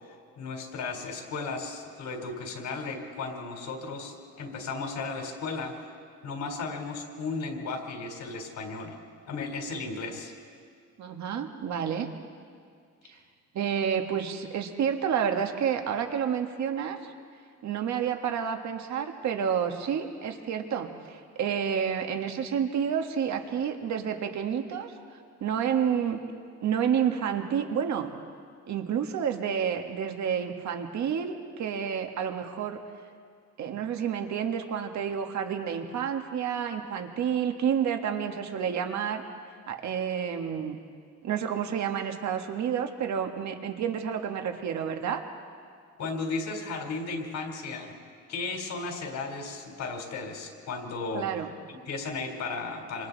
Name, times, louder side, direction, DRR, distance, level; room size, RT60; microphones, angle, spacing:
voice 1, 0.4-5.9 6.2-9.0 9.3-10.3 46.0-47.9 48.3-51.3 51.7-53.1, left 3 dB, 70° left, 2 dB, 3.9 m, -35 dB
voice 2, 11.0-12.1 13.5-17.0 17.6-24.9 25.4-26.2 26.6-28.1 28.7-32.8 33.6-39.2 39.7-40.8 41.2-45.2 51.1-51.5, right 8 dB, 65° right, 4 dB, 1.7 m, -29 dB
27.0 x 26.5 x 4.1 m, 2.2 s
cardioid pair, 135°, 30 cm